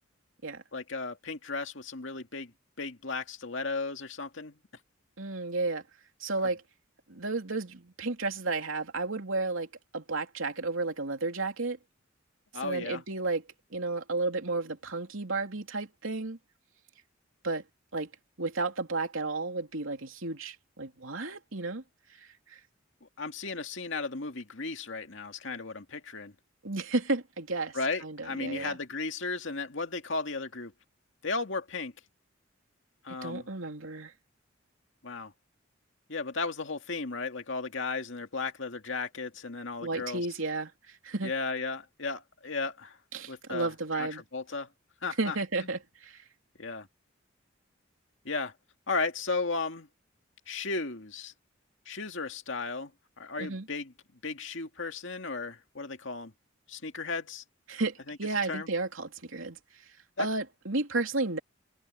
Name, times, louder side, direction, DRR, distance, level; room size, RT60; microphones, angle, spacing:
voice 1, 0.7-2.5 2.8-4.6 12.5-13.0 23.0-26.3 27.7-30.7 31.2-31.9 33.0-33.5 35.0-35.3 36.1-40.3 41.2-43.0 43.3-44.7 45.0-45.4 46.6-46.9 48.2-48.5 48.9-49.9 50.5-51.3 51.9-52.9 53.2-53.9 54.2-56.3 56.7-57.4 58.1-58.2 58.5-58.7 60.2-60.3, left 3 dB, 70° left, 2.1 m, -35 dB
voice 2, 5.2-5.8 6.2-6.6 7.1-9.7 9.9-11.8 12.6-13.4 13.7-16.4 17.4-17.6 17.9-18.1 18.4-21.8 22.2-22.6 26.6-28.8 33.2-34.1 39.8-41.3 43.1-44.2 45.2-46.2 53.4-53.7 57.7-59.6 60.2-61.4, right 3 dB, 80° right, 3.0 m, -32 dB
head